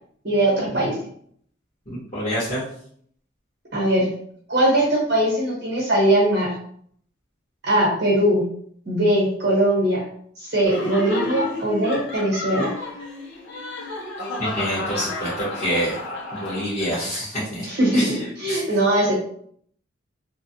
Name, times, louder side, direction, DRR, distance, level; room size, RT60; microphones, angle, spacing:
voice 1, 0.2-1.0 3.7-4.1 4.5-6.5 7.6-8.5 8.8-10.0 10.4-12.7 17.6-19.1, right 1 dB, 55° right, -4 dB, 1.0 m, -20 dB
voice 2, 1.9-2.6 14.4-15.9 16.3-17.6 17.9-18.2 18.5-18.6, equal, 35° left, -13 dB, 1.4 m, -27 dB
Laughter, 10.7-17.0, left 2 dB, 65° left, 0.7 m, -31 dB
3.1 x 2.2 x 2.7 m, 0.63 s
head